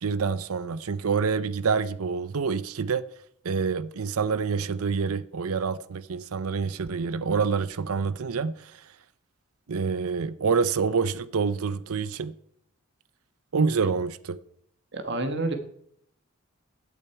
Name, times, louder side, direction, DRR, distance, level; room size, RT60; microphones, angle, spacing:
voice 1, 0.0-3.0 3.4-8.8 9.7-12.3 13.5-14.4, right 5 dB, 75° right, 0.6 m, -27 dB
voice 2, 14.9-15.5, right 2 dB, 50° right, 1.6 m, -28 dB
16.0 x 8.7 x 4.6 m
head